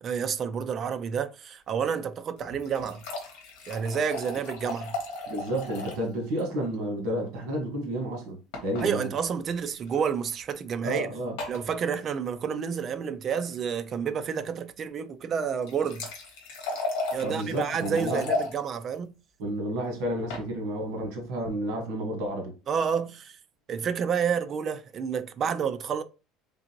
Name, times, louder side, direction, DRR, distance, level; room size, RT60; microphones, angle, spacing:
voice 1, 0.0-3.0 3.7-5.0 8.8-11.1 11.5-16.1 17.1-19.1 22.7-23.4 23.7-26.0, right 7 dB, 25° right, 0.3 m, -29 dB
sound 1, 2.4-6.1 6.4-6.5 6.7-6.8 8.5-8.9 9.9-10.0 11.4-11.7 15.4-18.5 20.0-20.5, left 3 dB, 70° left, 1.4 m, -35 dB
voice 2, 5.3-9.1 10.8-11.4 17.2-18.3 19.4-22.5, right 1 dB, 65° right, 1.4 m, -31 dB
3.8 x 3.6 x 2.9 m
cardioid pair, 180°, 0 cm